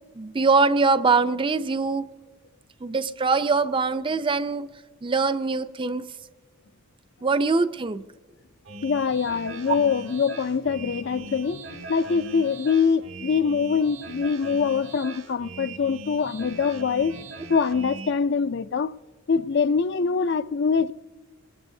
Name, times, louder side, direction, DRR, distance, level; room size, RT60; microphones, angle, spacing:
voice 1, 0.2-2.1 2.8-4.7 5.0-6.1 7.2-8.0, right 4 dB, 25° right, 0.4 m, -23 dB
sound 1, 8.7-18.1, right 2 dB, 80° right, 2.3 m, -40 dB
voice 2, 8.8-17.1 17.5-18.9 19.3-20.9, left 5 dB, 55° left, 0.4 m, -24 dB
26.0 x 20.0 x 2.7 m
head